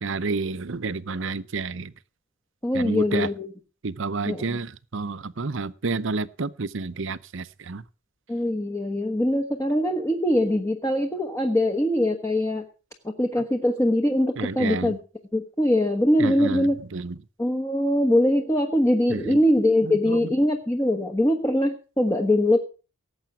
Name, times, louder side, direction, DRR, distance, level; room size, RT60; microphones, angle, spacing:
voice 1, 0.0-1.9 2.7-3.3 3.8-7.8 14.4-14.9 16.2-17.2 19.1-19.4 19.8-20.4, right 4 dB, 60° right, 0.7 m, -30 dB
voice 2, 2.6-3.5 4.2-4.6 8.3-12.7 13.0-15.0 15.3-16.8 17.4-22.6, left 1 dB, 15° left, 1.2 m, -22 dB
17.5 x 8.0 x 6.1 m
head